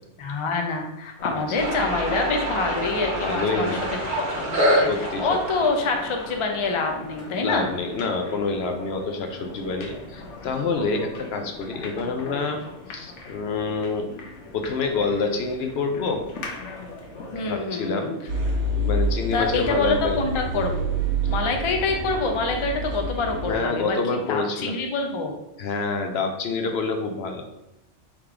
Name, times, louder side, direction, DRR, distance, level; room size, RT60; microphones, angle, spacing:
voice 1, 0.2-3.8 4.2-7.8 17.3-18.1 19.3-20.9 21.3-24.0 24.3-25.3, left 3 dB, 40° left, 3 dB, 0.4 m, -26 dB
sound 1, 1.2-17.7, left 2 dB, 90° left, 1.2 m, -40 dB
sound 2, 1.5-8.1, right 1 dB, 35° right, 1.4 m, -27 dB
voice 2, 3.2-3.8 4.8-5.4 7.4-14.1 14.5-16.2 17.5-18.1 18.8-20.2 20.5-20.7 21.2-21.3 23.5-24.7 25.6-27.4, left 4 dB, 65° left, 5 dB, 0.8 m, -27 dB
sound 3, 18.3-23.6, right 2 dB, 75° right, 1.3 m, -27 dB
3.6 x 3.1 x 4.7 m, 0.88 s
omnidirectional pair, 1.2 m